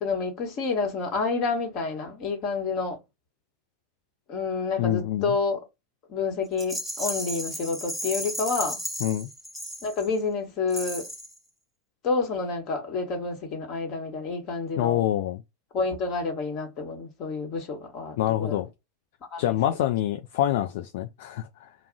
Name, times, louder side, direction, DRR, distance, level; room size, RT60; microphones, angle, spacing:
voice 1, 0.0-3.0 4.3-5.6 6.1-8.8 9.8-11.0 12.0-15.0 15.7-18.6 19.3-19.6, left 4 dB, 45° left, 1.1 m, -29 dB
voice 2, 4.8-5.3 9.0-9.3 14.8-15.4 18.2-18.7 19.4-21.7, left 12 dB, 65° left, 0.3 m, -26 dB
Rattle, 6.6-10.2 10.7-11.4, equal, ahead, 0.9 m, -34 dB
2.3 x 2.0 x 3.6 m
hypercardioid pair, 90°, 0 cm